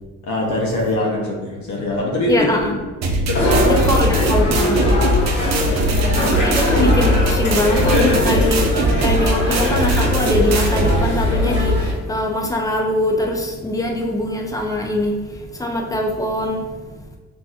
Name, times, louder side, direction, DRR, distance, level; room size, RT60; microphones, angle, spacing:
voice 1, 0.2-2.5 3.2-3.7 5.4-5.9, left 1 dB, 70° left, -3 dB, 0.8 m, -23 dB
voice 2, 2.3-2.8 3.6-17.2, left 1 dB, 10° left, 0 dB, 0.5 m, -23 dB
sound 1, 3.0-11.0, right 2 dB, 60° right, 0.6 m, -21 dB
sound 2, 3.3-11.9, left 1 dB, 35° left, 1.4 m, -19 dB
3.9 x 2.7 x 2.3 m, 1.3 s
cardioid pair, 90°, 30 cm